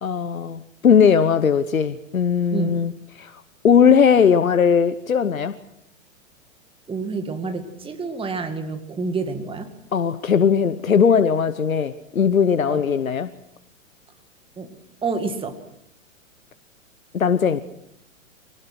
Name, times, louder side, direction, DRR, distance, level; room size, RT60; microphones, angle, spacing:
voice 1, 0.0-5.6 9.9-13.3 17.1-17.6, left 7 dB, 85° left, 12 dB, 1.0 m, -19 dB
voice 2, 6.9-9.7 12.7-12.8 14.6-14.8 15.0-15.6, right 4 dB, 15° right, 8 dB, 2.1 m, -28 dB
24.5 x 18.5 x 6.0 m, 0.78 s
figure-of-eight pair, 110°, 40 cm